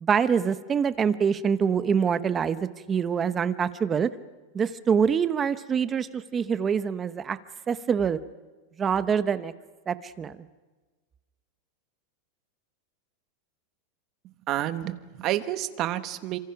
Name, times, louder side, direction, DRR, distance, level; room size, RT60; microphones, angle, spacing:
voice 1, 0.0-4.1 4.5-7.4 7.7-8.2 8.8-9.5 9.9-10.3, right 7 dB, 20° right, 13 dB, 0.9 m, -25 dB
voice 2, 14.5-16.4, right 13 dB, 35° right, 11 dB, 1.3 m, -29 dB
29.0 x 26.0 x 5.9 m, 1.3 s
supercardioid pair, 155°, 0 cm